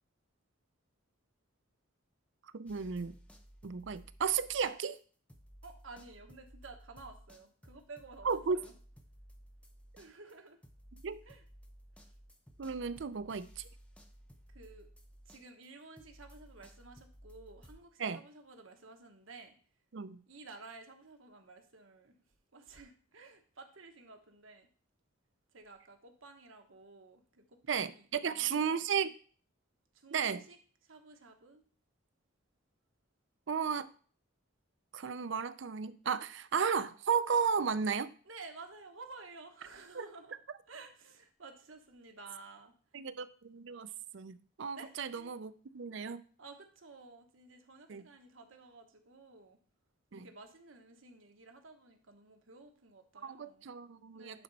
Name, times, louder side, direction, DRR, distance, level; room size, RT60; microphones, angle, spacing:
voice 1, 2.5-3.1 3.6-5.0 8.2-8.6 11.0-11.2 12.6-13.7 18.0-18.2 19.9-20.2 27.7-29.1 30.1-30.4 33.5-33.9 34.9-38.1 40.0-40.1 42.9-46.2 47.9-48.1 50.1-50.3 53.2-54.4, right 6 dB, 65° right, 0.5 m, -34 dB
sound 1, 2.6-5.0 5.3-17.8, equal, 5° left, 0.7 m, -57 dB
voice 2, 5.6-8.8 10.0-10.6 11.2-11.4 12.0-12.1 14.5-14.9 15.2-19.5 20.3-22.2 22.5-24.7 25.5-28.7 29.9-30.6 30.8-31.6 38.2-40.4 40.7-42.7 44.7-45.3 46.4-49.6 50.1-53.7 54.1-54.4, right 3 dB, 80° right, 1.2 m, -53 dB
11.0 x 4.2 x 4.1 m
head